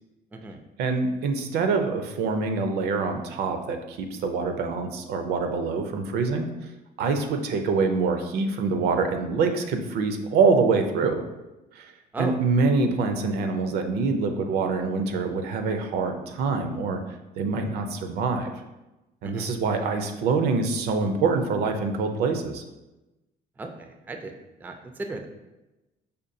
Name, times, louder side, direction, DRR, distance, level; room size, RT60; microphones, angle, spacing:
voice 1, 0.8-6.5 7.0-11.2 11.7-11.9 12.2-17.0 17.4-18.5 19.2-22.6, right 4 dB, 75° right, 6 dB, 0.5 m, -25 dB
voice 2, 23.6-24.3 24.6-24.7 25.1-25.3, right 3 dB, 10° right, 4 dB, 0.3 m, -35 dB
5.1 x 2.2 x 2.6 m, 1.0 s
cardioid pair, 110°, 17 cm